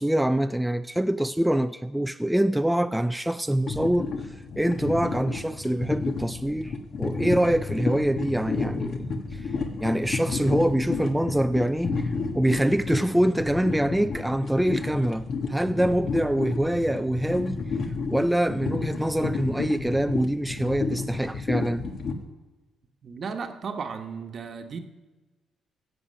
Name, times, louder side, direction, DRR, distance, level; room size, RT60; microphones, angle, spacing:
voice 1, 0.0-9.5 9.8-17.6 18.1-21.9, right 1 dB, 5° right, 0.3 m, -25 dB
sound 1, 3.7-22.1, left 4 dB, 60° left, 1.3 m, -31 dB
voice 2, 23.0-24.8, right 5 dB, 50° right, 1.1 m, -35 dB
15.0 x 7.8 x 5.5 m
cardioid pair, 90°, 0 cm